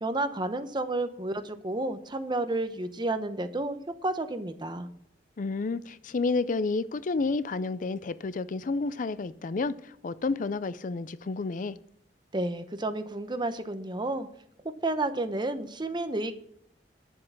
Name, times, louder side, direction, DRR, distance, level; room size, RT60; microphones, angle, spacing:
voice 1, 0.0-4.9 12.3-14.3 14.8-16.3, right 2 dB, 25° right, 0.8 m, -31 dB
voice 2, 5.4-11.8, left 3 dB, 50° left, 0.4 m, -30 dB
10.5 x 7.6 x 5.8 m
head